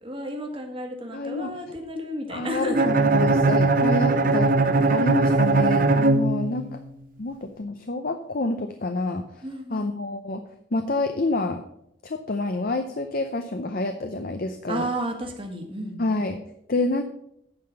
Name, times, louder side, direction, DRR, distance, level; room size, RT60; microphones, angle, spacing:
voice 1, 0.0-2.9 9.4-9.9 14.7-16.0, equal, 30° right, 3 dB, 1.5 m, -32 dB
voice 2, 1.1-1.5 2.3-4.5 4.8-6.7 7.2-10.4 10.7-11.6 12.0-14.9 16.0-16.4 16.7-17.0, left 2 dB, 50° left, 7 dB, 0.6 m, -28 dB
Bowed string instrument, 2.7-6.9, right 3 dB, 45° right, 0.7 m, -20 dB
8.9 x 5.8 x 6.8 m, 0.75 s
head